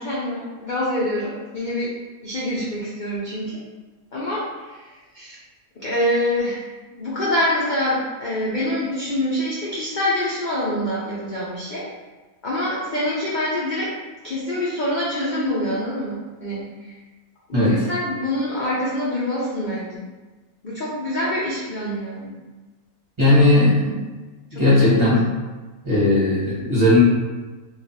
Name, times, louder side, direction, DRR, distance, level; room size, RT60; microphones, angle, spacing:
voice 1, 0.0-1.9 2.2-3.6 4.1-5.4 5.8-6.6 7.0-11.9 12.4-13.9 14.2-17.0 17.5-20.0 20.6-22.4 24.5-24.9, left 1 dB, 90° left, -7 dB, 0.4 m, -25 dB
voice 2, 23.2-24.0 24.5-25.2 25.8-27.0, left 1 dB, 25° right, -9 dB, 0.7 m, -17 dB
2.4 x 2.3 x 4.0 m, 1.2 s
omnidirectional pair, 1.6 m